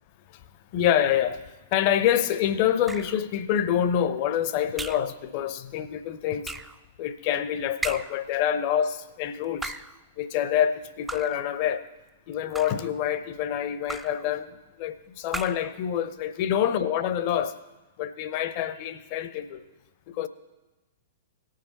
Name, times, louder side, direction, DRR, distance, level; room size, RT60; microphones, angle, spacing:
voice 1, 0.7-1.4 1.7-6.5 7.0-9.8 10.2-11.8 12.3-17.5 18.0-19.6 20.1-20.3, left 10 dB, 40° left, 0.6 m, -26 dB
sound 1, 2.8-3.3 4.8-5.2 6.4-6.8 7.8-8.3 9.4-10.0 11.1-11.5 12.3-12.9 13.9-14.3 15.3-15.7, right 3 dB, 5° right, 0.3 m, -36 dB
18.0 x 6.5 x 4.0 m
figure-of-eight pair, 105°, 0 cm